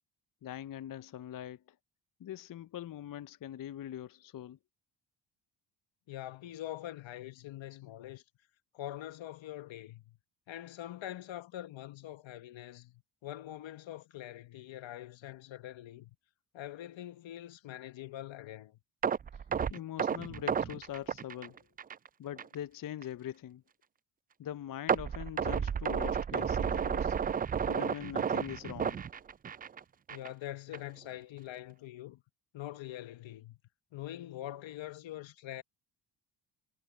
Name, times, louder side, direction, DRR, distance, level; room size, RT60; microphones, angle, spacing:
voice 1, 0.4-1.8 2.2-4.6 19.3-19.4 19.7-21.7 22.2-23.6 24.4-27.2 27.7-29.0, left 11 dB, 45° left, 0.7 m, -42 dB
voice 2, 6.1-8.2 8.7-10.2 10.5-16.1 16.5-18.8 30.1-32.2 32.5-33.6 33.9-35.6, left 13 dB, 70° left, 1.5 m, -44 dB
sound 1, 19.0-22.1 22.4-22.5 23.0-23.1 24.9-29.8 30.1-30.3 30.7-30.8, right 7 dB, 20° right, 0.3 m, -32 dB
supercardioid pair, 60°, 48 cm